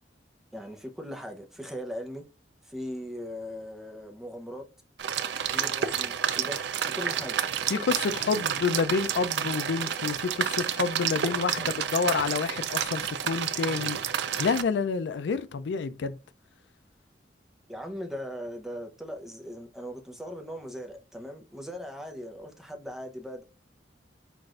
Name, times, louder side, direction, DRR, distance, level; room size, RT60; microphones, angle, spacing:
voice 1, 0.5-2.2 2.6-4.6 5.4-7.4 11.6-11.9 17.7-23.4, equal, ahead, 0.7 m, -39 dB
sound 1, 5.0-14.6, right 8 dB, 75° right, 0.4 m, -30 dB
voice 2, 7.7-14.0 14.4-16.2, left 5 dB, 80° left, 0.4 m, -28 dB
5.9 x 2.5 x 2.4 m
head